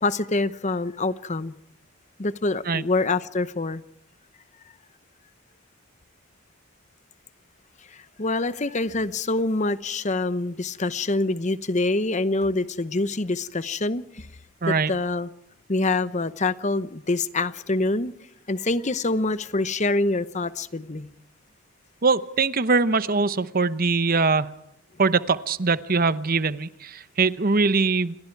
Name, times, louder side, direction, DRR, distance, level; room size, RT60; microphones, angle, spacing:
voice 1, 0.0-1.5 2.2-3.8 8.2-14.3 14.7-15.3 15.7-18.1 18.5-21.1, left 2 dB, 35° left, 14 dB, 0.9 m, -25 dB
voice 2, 22.0-24.5 25.0-28.1, right 4 dB, 40° right, 14 dB, 0.9 m, -22 dB
28.5 x 22.5 x 4.7 m, 0.79 s
head